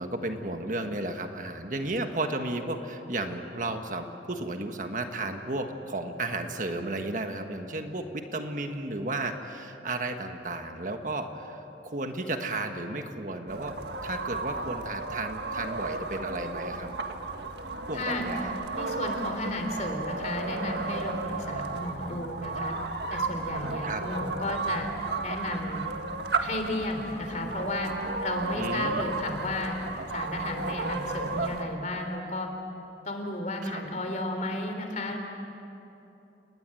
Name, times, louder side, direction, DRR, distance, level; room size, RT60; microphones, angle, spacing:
voice 1, 0.0-17.1 17.9-18.5 23.8-24.0 27.4-27.5 28.5-29.1 33.6-33.8, right 2 dB, 45° right, 5 dB, 1.5 m, -33 dB
sound 1, 13.5-31.6, right 3 dB, 75° right, 1.7 m, -34 dB
voice 2, 17.9-18.3 18.7-22.7 23.1-24.9 25.2-25.8 26.4-27.9 28.2-29.8 30.1-32.5 33.0-35.2, left 1 dB, 45° left, 4 dB, 3.3 m, -33 dB
29.5 x 20.0 x 7.8 m, 2.9 s
head